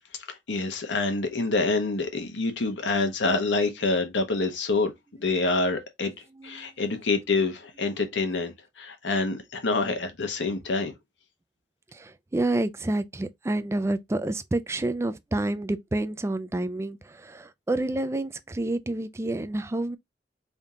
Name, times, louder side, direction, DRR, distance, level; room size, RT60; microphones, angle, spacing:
voice 1, 0.3-4.9 5.2-6.1 6.4-10.9, left 3 dB, 80° left, 1.0 m, -27 dB
voice 2, 6.3-6.7 11.9-20.0, right 2 dB, 15° right, 0.3 m, -29 dB
3.5 x 2.7 x 3.6 m
head